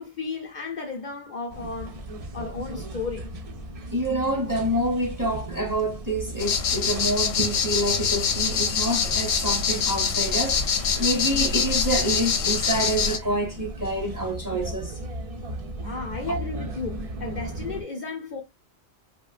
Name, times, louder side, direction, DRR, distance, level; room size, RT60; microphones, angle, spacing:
voice 1, 0.0-2.0 2.3-3.3 15.7-18.4, left 4 dB, 50° left, 0.6 m, -34 dB
sound 1, 1.5-17.8, right 1 dB, 45° right, 0.5 m, -37 dB
voice 2, 3.9-10.6 11.0-14.9, right 1 dB, 20° right, 0.8 m, -27 dB
sound 2, 6.4-13.2, left 6 dB, 80° left, 0.9 m, -25 dB
3.2 x 2.1 x 2.4 m
omnidirectional pair, 1.1 m